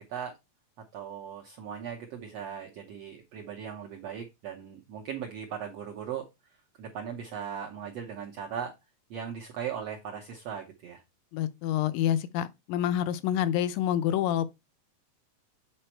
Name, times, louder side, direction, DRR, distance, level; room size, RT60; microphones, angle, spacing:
voice 1, 0.9-6.3 6.8-8.7 9.1-11.0, right 8 dB, 75° right, 1.5 m, -38 dB
voice 2, 11.3-14.5, left 11 dB, 80° left, 2.2 m, -27 dB
7.9 x 4.2 x 4.4 m
omnidirectional pair, 4.0 m